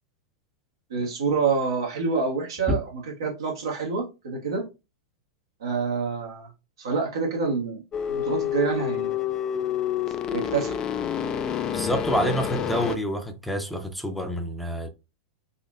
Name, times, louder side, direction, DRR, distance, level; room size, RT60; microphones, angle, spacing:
voice 1, 0.9-4.6 5.6-6.5 6.8-7.8 8.1-9.2 10.3-10.8, right 5 dB, 70° right, 1.2 m, -27 dB
sound 1, 7.9-13.0, left 9 dB, 30° left, 0.5 m, -28 dB
voice 2, 11.7-14.9, equal, ahead, 0.7 m, -27 dB
4.1 x 2.9 x 2.4 m
figure-of-eight pair, 95°, 2 cm